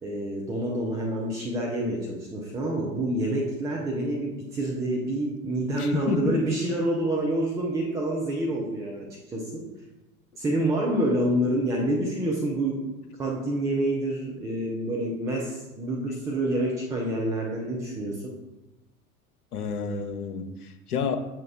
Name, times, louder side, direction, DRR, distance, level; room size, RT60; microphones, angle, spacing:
voice 1, 0.0-9.7 10.4-12.9 13.2-18.3, right 1 dB, 10° right, -1 dB, 0.3 m, -27 dB
voice 2, 5.8-6.4 19.5-21.2, left 6 dB, 75° left, 5 dB, 0.8 m, -29 dB
7.4 x 2.9 x 4.8 m, 1.0 s
figure-of-eight pair, 85°, 45 cm